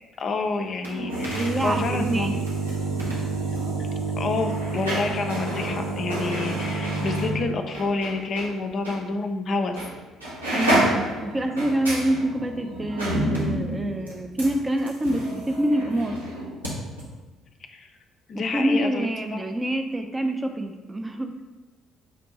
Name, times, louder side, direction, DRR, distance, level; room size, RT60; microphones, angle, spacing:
voice 1, 0.2-2.3 4.2-9.8 17.7-17.9 18.3-19.1, left 3 dB, 45° left, 5 dB, 0.3 m, -28 dB
sound 1, 0.7-8.5 8.8-9.0 9.8-9.9 10.2-16.7 17.0-17.1, right 2 dB, 90° right, 0.7 m, -28 dB
voice 2, 1.3-2.4 10.5-16.2 18.3-21.4, right 1 dB, 20° right, 5 dB, 0.4 m, -26 dB
5.2 x 2.5 x 3.0 m, 1.2 s
figure-of-eight pair, 50°, 0 cm